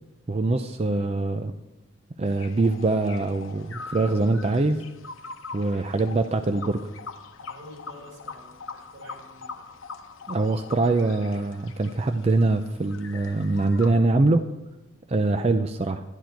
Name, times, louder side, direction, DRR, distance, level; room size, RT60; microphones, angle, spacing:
voice 1, 0.3-1.5 2.2-4.8 5.5-6.8 10.3-14.4 15.1-16.0, right 2 dB, 30° right, 7 dB, 0.4 m, -23 dB
sound 1, 2.2-13.9, left 4 dB, 80° left, 0.9 m, -42 dB
voice 2, 7.4-9.7, equal, 70° right, -1 dB, 4.1 m, -48 dB
11.5 x 10.5 x 4.5 m, 0.98 s
head